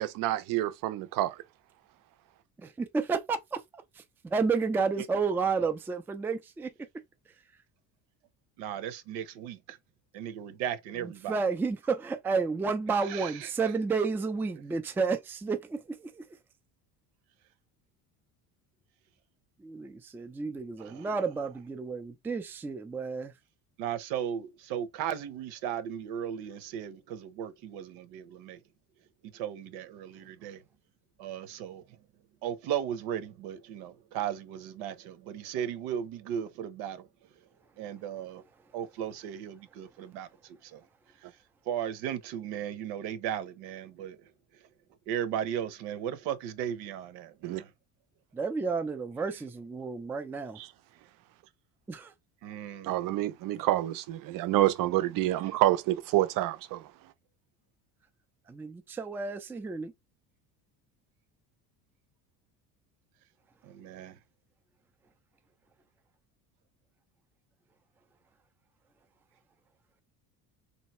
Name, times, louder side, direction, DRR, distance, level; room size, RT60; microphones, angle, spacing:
voice 1, 0.0-1.4 47.4-47.6 52.8-56.8, right 15 dB, 60° right, 0.6 m, -28 dB
voice 2, 2.6-6.7 11.0-16.2 19.6-23.3 48.3-50.6 51.9-52.1 58.5-59.9, right 4 dB, 5° right, 0.3 m, -31 dB
voice 3, 8.6-9.8 10.1-11.4 13.0-13.5 20.8-21.1 23.8-28.6 29.2-30.6 31.2-31.8 32.4-37.1 37.8-38.4 38.7-40.8 41.7-44.2 45.1-47.7 52.4-53.1 63.6-64.2, right 9 dB, 90° right, 0.9 m, -36 dB
3.1 x 2.7 x 4.2 m
cardioid pair, 130°, 38 cm